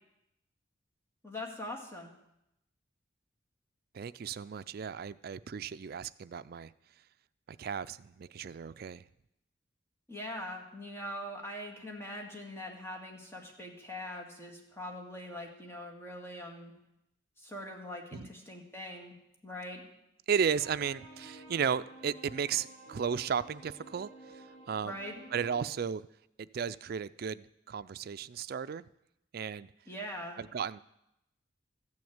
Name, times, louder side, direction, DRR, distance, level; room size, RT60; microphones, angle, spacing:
voice 1, 1.2-2.1 10.1-16.7 17.4-19.2 19.4-19.9 24.8-25.2 29.9-30.4, left 1 dB, 15° left, 0 dB, 2.1 m, -42 dB
voice 2, 3.9-6.7 7.5-9.0 18.1-18.3 20.3-24.1 24.3-25.0 25.3-26.0 26.4-28.8 29.3-29.7 30.4-30.8, right 7 dB, 55° right, 14 dB, 0.4 m, -34 dB
sound 1, 20.5-25.7, right 1 dB, 40° left, 3.1 m, -52 dB
13.5 x 6.4 x 8.7 m, 0.84 s
head